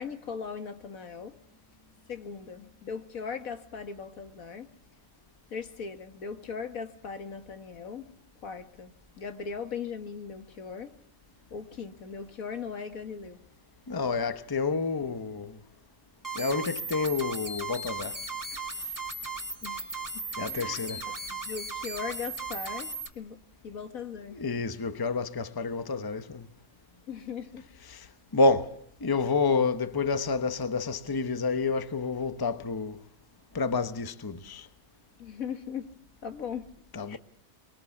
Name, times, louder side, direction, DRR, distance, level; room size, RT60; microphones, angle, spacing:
voice 1, 0.0-1.4 2.1-4.7 5.5-8.1 8.4-10.9 11.5-13.4 19.6-23.4 23.6-24.4 27.1-27.7 35.2-36.0 36.2-37.2, left 6 dB, 85° left, 2.0 m, -39 dB
voice 2, 13.9-15.6 16.3-18.2 20.4-21.1 24.3-26.5 27.9-33.0 33.5-34.7 36.9-37.2, left 4 dB, 20° left, 0.9 m, -29 dB
sound 1, 16.2-23.1, right 3 dB, 15° right, 1.6 m, -36 dB
24.0 x 23.0 x 7.1 m
omnidirectional pair, 1.4 m